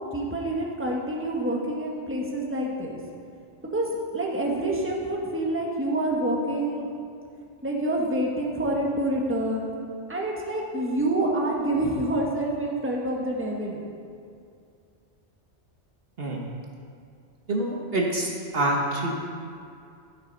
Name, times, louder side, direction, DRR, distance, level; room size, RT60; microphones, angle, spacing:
voice 1, 0.1-2.9 3.7-6.9 7.6-9.6 10.1-13.8, right 1 dB, 10° right, -2 dB, 1.5 m, -27 dB
voice 2, 17.5-19.1, right 1 dB, 55° right, -1 dB, 1.4 m, -26 dB
12.0 x 7.8 x 5.4 m, 2.4 s
omnidirectional pair, 1.2 m